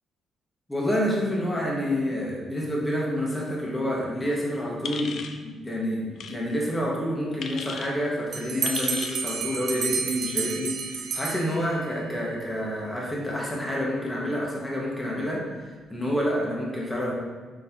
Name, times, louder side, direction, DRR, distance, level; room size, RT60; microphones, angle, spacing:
voice 1, 0.7-15.4 15.9-17.1, equal, 10° left, -4 dB, 1.0 m, -28 dB
sound 1, 4.8-5.4 6.2-6.4 7.4-7.9 8.6-9.2, left 5 dB, 65° left, 0.3 m, -35 dB
Bell, 8.3-12.0, right 6 dB, 70° right, 0.4 m, -31 dB
3.9 x 3.9 x 2.9 m, 1.4 s
cardioid pair, 90°, 0 cm